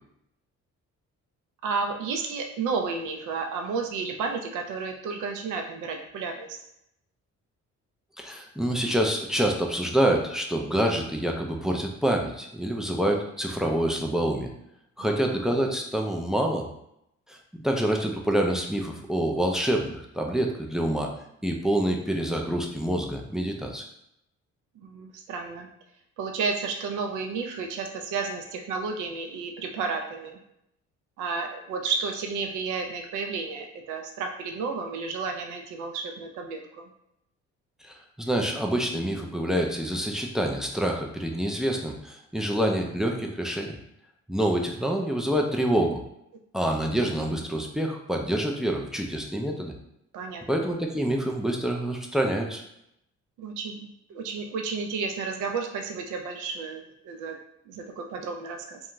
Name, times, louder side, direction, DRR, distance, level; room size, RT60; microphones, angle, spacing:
voice 1, 1.6-6.6 15.0-15.4 24.8-25.7 26.2-30.4 31.2-36.8 50.1-50.4 53.4-57.4 57.7-58.8, right 4 dB, 80° right, 4 dB, 0.5 m, -32 dB
voice 2, 8.2-14.5 15.0-16.6 17.3-17.4 17.6-21.1 21.4-23.8 37.8-43.7 44.3-46.0 46.5-49.7 50.5-52.6, right 1 dB, ahead, 1 dB, 0.3 m, -26 dB
2.5 x 2.2 x 2.9 m, 0.79 s
cardioid pair, 90°, 30 cm